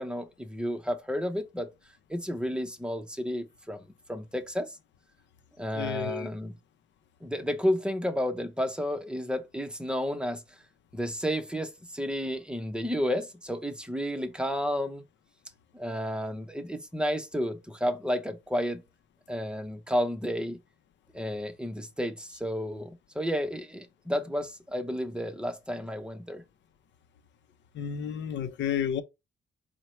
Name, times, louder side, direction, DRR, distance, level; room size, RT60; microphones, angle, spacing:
voice 1, 0.0-1.7 2.1-4.8 5.6-6.5 7.2-10.4 10.9-15.0 15.7-18.8 19.3-20.6 21.1-26.4, equal, 5° right, 0.7 m, -31 dB
voice 2, 5.7-6.3 27.7-29.0, left 8 dB, 65° left, 0.6 m, -31 dB
4.5 x 2.1 x 4.3 m
cardioid pair, 90°, 20 cm